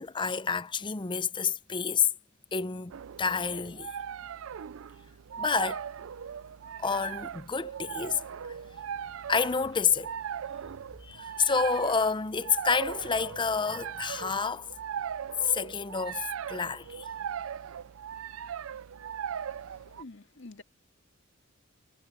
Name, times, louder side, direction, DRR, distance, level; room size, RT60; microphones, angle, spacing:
voice 1, 0.0-2.1 2.5-3.9 5.4-5.9 6.8-8.2 9.3-10.1 11.0-14.7 15.4-17.1, left 5 dB, 25° left, 0.6 m, -29 dB
sound 1, 2.9-20.0, right 8 dB, 70° right, 0.4 m, -39 dB
voice 2, 19.7-20.6, left 2 dB, 60° left, 1.9 m, -48 dB
head